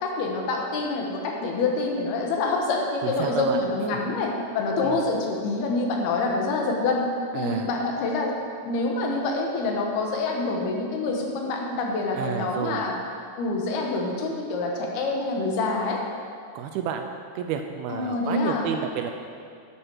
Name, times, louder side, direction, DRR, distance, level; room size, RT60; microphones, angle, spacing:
voice 1, 0.0-7.1 7.3-8.3 8.7-13.0 13.4-16.0 17.9-18.7, left 3 dB, 75° left, 0 dB, 3.1 m, -26 dB
voice 2, 3.0-3.6 3.9-4.0 4.8-5.0 7.3-7.7 12.1-12.9 16.6-17.1 17.4-19.1, right 8 dB, 80° right, 5 dB, 2.3 m, -30 dB
11.0 x 11.0 x 4.7 m, 2.3 s
omnidirectional pair, 4.7 m